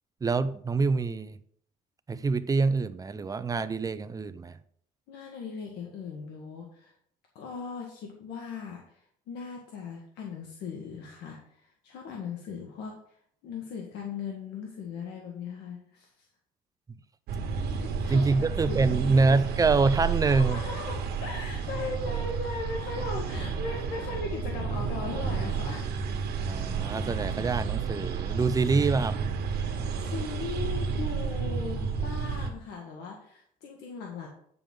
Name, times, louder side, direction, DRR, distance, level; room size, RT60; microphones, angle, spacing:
voice 1, 0.2-1.4 2.1-4.6 18.1-20.6 26.5-29.2, right 4 dB, 20° right, 13 dB, 0.6 m, -25 dB
voice 2, 5.1-6.9 7.3-13.2 13.4-16.3 17.7-19.2 20.2-26.0 30.0-34.3, left 4 dB, 85° left, 0 dB, 1.6 m, -39 dB
sound 1, 17.3-32.5, right 5 dB, 70° right, 1.5 m, -31 dB
9.1 x 6.9 x 3.7 m, 0.66 s
cardioid pair, 110°, 17 cm